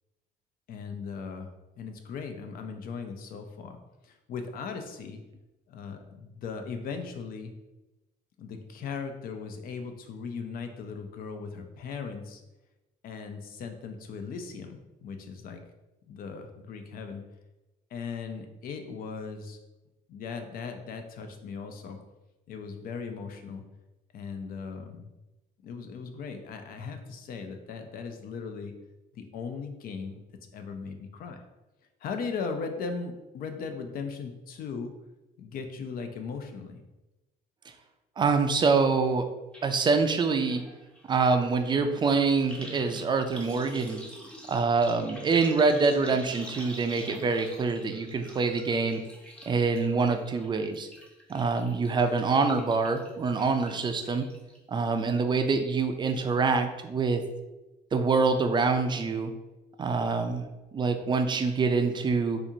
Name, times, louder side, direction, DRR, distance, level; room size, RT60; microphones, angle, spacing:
voice 1, 0.7-1.5 1.8-3.8 4.0-5.2 5.7-7.5 8.4-12.4 13.0-15.6 16.1-17.3 17.9-19.6 20.1-22.0 22.5-23.6 24.1-25.1 25.6-28.7 29.1-30.2 30.5-31.4 32.0-34.9 35.4-36.8, left 5 dB, 60° left, 6 dB, 0.5 m, -38 dB
voice 2, 38.2-39.2 39.6-40.6 41.1-44.0 44.5-49.0 49.5-50.9 51.3-54.2 54.7-57.2 57.9-59.3 59.8-60.4 60.7-62.4, right 4 dB, 25° right, 6 dB, 0.4 m, -25 dB
sound 1, 39.5-39.6 39.9-54.6 55.0-55.4 55.7-55.8, equal, 5° left, 0.7 m, -47 dB
4.2 x 2.5 x 2.7 m, 1.0 s
cardioid pair, 110°, 17 cm